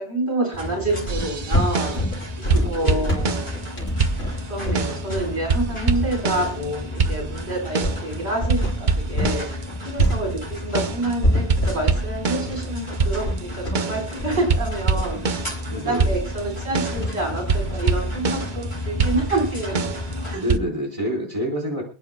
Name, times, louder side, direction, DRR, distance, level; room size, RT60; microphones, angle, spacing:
voice 1, 0.0-2.0 2.6-3.4 4.5-9.5 9.8-15.2 15.7-19.9 20.2-20.4, right 2 dB, 75° right, 0 dB, 4.5 m, -27 dB
sound 1, 0.5-20.3, left 1 dB, 30° left, 6.0 m, -33 dB
sound 2, 1.1-9.4 9.7-18.4, left 1 dB, 75° left, 4.0 m, -27 dB
sound 3, 1.1-2.2 2.5-3.7 4.0-5.1 5.5-6.7 7.0-8.1 8.5-11.1 11.5-15.7 16.0-18.6 19.0-20.6, right 4 dB, 50° right, 0.9 m, -25 dB
voice 2, 2.4-3.1 15.6-16.2 20.3-21.8, equal, 30° right, -2 dB, 4.3 m, -28 dB
28.0 x 9.5 x 2.2 m, 0.37 s
omnidirectional pair, 1.1 m